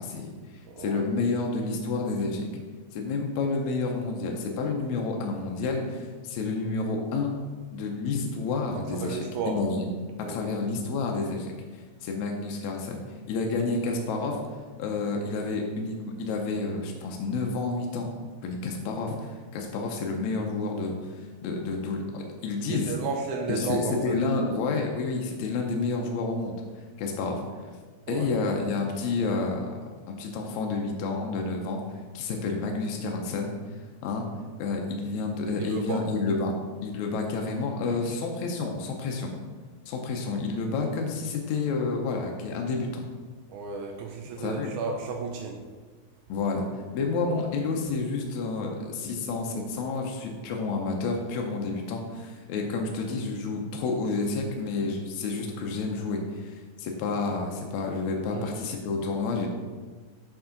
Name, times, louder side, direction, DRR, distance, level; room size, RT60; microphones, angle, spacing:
voice 1, 0.0-2.6 2.9-7.3 7.7-9.2 9.5-9.9 10.3-13.0 13.3-14.4 14.8-18.1 18.4-23.0 23.5-26.6 27.0-27.4 28.1-29.7 30.1-31.8 32.1-33.5 34.0-34.2 34.6-36.5 36.8-39.3 39.9-42.9 44.4-44.7 46.3-59.5, left 3 dB, 80° left, 1 dB, 2.0 m, -30 dB
voice 2, 0.7-1.1 9.0-9.6 10.2-10.4 19.8-19.9 22.7-24.2 28.1-28.3 35.6-36.0 37.8-38.0 43.5-45.6 47.2-47.3 58.3-58.5, right 5 dB, 85° right, 2 dB, 2.1 m, -33 dB
7.1 x 6.0 x 3.8 m, 1.4 s
omnidirectional pair, 3.4 m